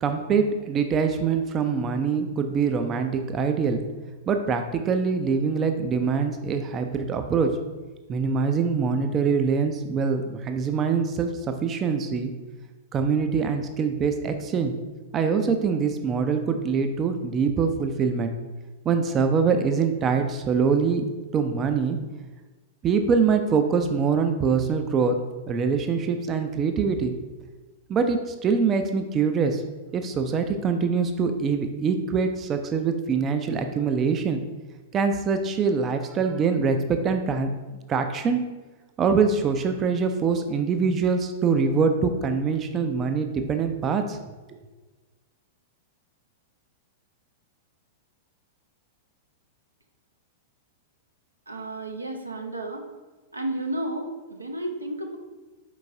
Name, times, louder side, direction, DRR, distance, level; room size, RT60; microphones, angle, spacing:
voice 1, 0.0-3.8 4.3-7.5 8.1-12.3 12.9-14.7 15.1-18.3 18.9-21.0 21.3-22.0 22.8-25.2 25.5-27.1 27.9-29.6 29.9-34.4 34.9-37.5 37.9-38.4 39.0-44.2, right 5 dB, 25° right, 6 dB, 0.4 m, -24 dB
voice 2, 51.5-52.9 53.3-55.2, right 1 dB, 85° right, 3 dB, 0.6 m, -32 dB
4.5 x 4.4 x 2.6 m, 1.2 s
figure-of-eight pair, 95°, 0 cm